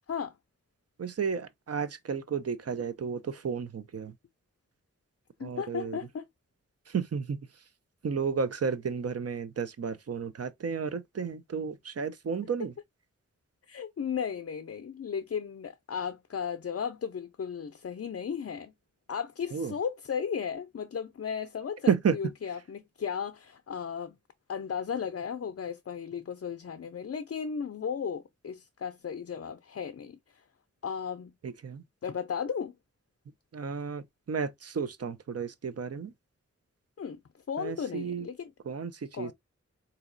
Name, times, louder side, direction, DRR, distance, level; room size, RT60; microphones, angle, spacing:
voice 1, 1.0-4.1 5.4-6.0 6.9-7.4 8.0-12.7 19.5-19.7 21.9-22.2 31.4-31.8 33.5-36.1 37.6-38.3 38.7-39.3, right 6 dB, 55° right, 0.5 m, -32 dB
voice 2, 5.4-6.3 13.7-18.7 19.1-24.2 24.5-30.4 30.8-31.3 32.0-32.7 37.0-37.2 37.5-38.5 39.1-39.3, left 7 dB, 55° left, 0.4 m, -35 dB
3.9 x 2.8 x 2.5 m
wide cardioid pair, 80°, 30 cm